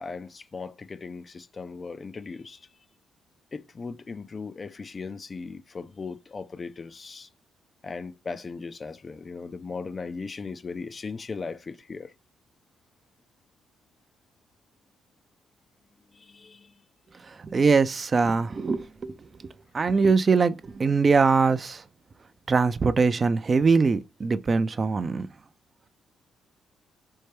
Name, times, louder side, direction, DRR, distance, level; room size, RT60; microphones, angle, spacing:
voice 1, 0.0-2.7 3.5-7.3 7.8-12.1 16.1-16.8, left 4 dB, 35° left, 0.4 m, -38 dB
voice 2, 17.3-19.2 19.4-21.8 22.5-25.3, right 4 dB, 35° right, 0.4 m, -22 dB
4.3 x 2.2 x 3.2 m
cardioid pair, 90°, 0 cm